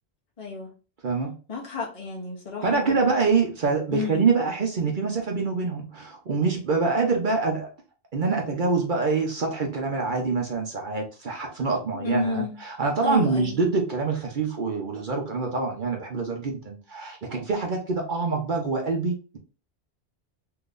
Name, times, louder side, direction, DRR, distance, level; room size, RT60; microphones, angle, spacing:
voice 1, 0.4-0.7 1.5-3.0 3.9-4.2 4.8-5.0 11.9-12.5 13.0-13.6, left 3 dB, 35° left, -2 dB, 0.9 m, -31 dB
voice 2, 2.6-7.7 8.1-19.4, right 4 dB, 50° right, 2 dB, 0.9 m, -25 dB
3.8 x 2.7 x 2.4 m, 0.35 s
omnidirectional pair, 1.1 m